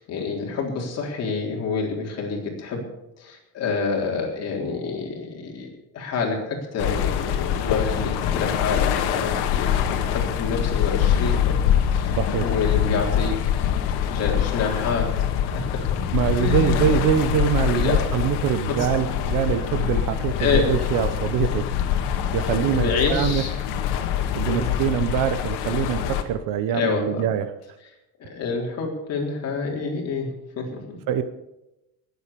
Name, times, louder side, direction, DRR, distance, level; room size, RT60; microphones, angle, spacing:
voice 1, 0.0-2.8 3.2-5.7 5.9-13.4 14.0-15.9 16.3-16.9 17.7-18.0 20.4-20.7 22.5-23.6 24.5-24.7 26.7-27.2 28.2-30.3 30.6-31.0, left 4 dB, 40° left, 0 dB, 3.8 m, -28 dB
sound 1, 6.8-26.2, left 9 dB, 90° left, 1.8 m, -24 dB
voice 2, 12.0-12.5 16.1-21.7 22.3-23.4 24.3-27.5 31.1-31.2, right 9 dB, 55° right, 12 dB, 1.1 m, -24 dB
20.0 x 8.2 x 6.9 m, 0.93 s
cardioid pair, 165°, 38 cm